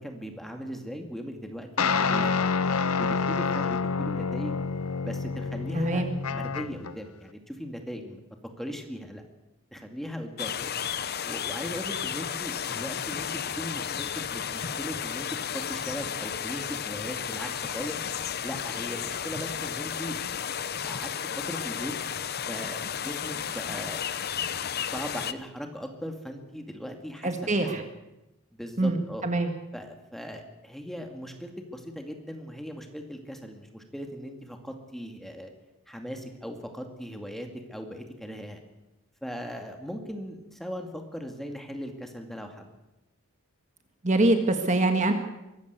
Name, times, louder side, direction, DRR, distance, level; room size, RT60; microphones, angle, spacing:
voice 1, 0.0-2.5 3.0-4.6 5.0-8.2 8.6-9.2 9.7-10.6 11.2-15.3 15.5-18.0 18.4-20.2 20.8-21.1 21.4-21.9 22.5-24.0 24.9-27.8 28.5-29.3 29.7-35.5 35.9-38.6 39.2-42.7, equal, ahead, 4 dB, 2.2 m, -38 dB
sound 1, 1.8-6.9, left 5 dB, 85° left, 1.0 m, -28 dB
voice 2, 5.8-6.1 27.2-27.8 28.8-29.5 44.0-45.1, right 2 dB, 35° right, 6 dB, 1.7 m, -24 dB
sound 2, 10.4-25.3, left 8 dB, 45° left, 0.8 m, -33 dB
23.5 x 14.5 x 8.3 m, 0.96 s
head